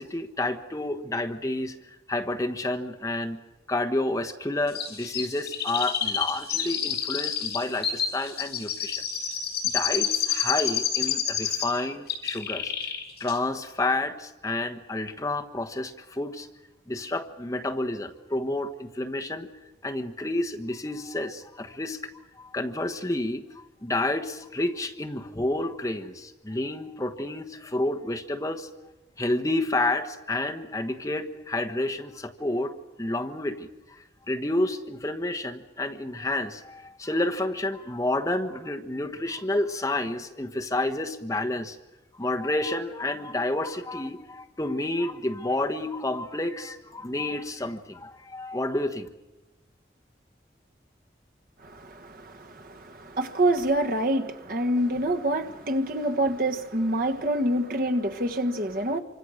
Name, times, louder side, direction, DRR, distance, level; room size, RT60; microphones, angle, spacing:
voice 1, 0.0-3.4 3.7-9.0 9.6-12.7 13.2-16.5 16.9-19.5 19.8-23.5 23.8-28.7 29.2-32.7 33.0-41.8 42.1-49.1, left 2 dB, 20° left, 1.2 m, -30 dB
Chirp tweet, 4.7-11.8 12.1-13.0 13.3-13.4, left 8 dB, 65° left, 4.7 m, -29 dB
voice 2, 51.6-59.0, right 1 dB, 50° right, 1.4 m, -26 dB
27.0 x 25.0 x 6.5 m
head